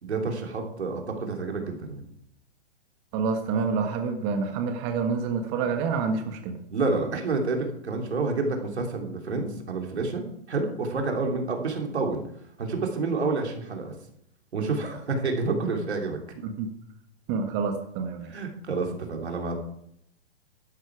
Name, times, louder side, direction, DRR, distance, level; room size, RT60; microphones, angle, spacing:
voice 1, 0.0-2.0 6.7-10.2 10.5-12.2 12.6-13.9 14.5-16.2 18.3-19.6, right 3 dB, 85° right, 2 dB, 3.2 m, -29 dB
voice 2, 3.1-6.6 16.4-16.7 17.3-18.3, right 5 dB, 35° right, 5 dB, 1.7 m, -28 dB
12.5 x 10.0 x 4.7 m, 0.75 s
hypercardioid pair, 130°, 32 cm